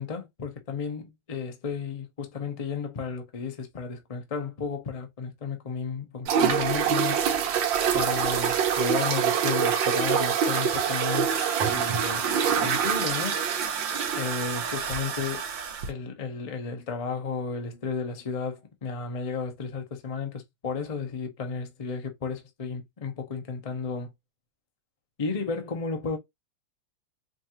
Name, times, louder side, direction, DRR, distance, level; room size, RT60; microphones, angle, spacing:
voice 1, 0.0-7.2 7.9-11.4 11.7-12.3 12.6-13.4 14.1-15.4 15.9-24.1 25.2-26.2, left 5 dB, 50° left, 0.4 m, -33 dB
sound 1, 6.3-15.9, right 7 dB, 70° right, 1.5 m, -25 dB
5.1 x 2.5 x 2.9 m
omnidirectional pair, 2.2 m